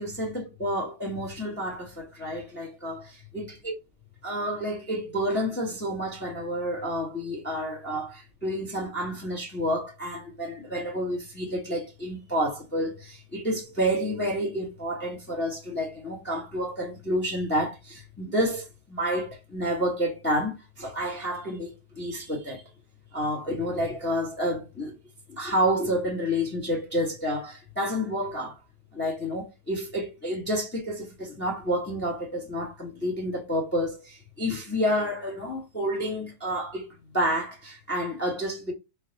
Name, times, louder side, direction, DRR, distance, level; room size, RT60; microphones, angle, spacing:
voice 1, 0.0-3.7 4.2-22.6 23.1-25.0 25.3-28.6 28.9-36.9 37.1-38.7, equal, 5° left, 1.3 m, -29 dB
4.3 x 2.6 x 4.0 m
omnidirectional pair, 1.7 m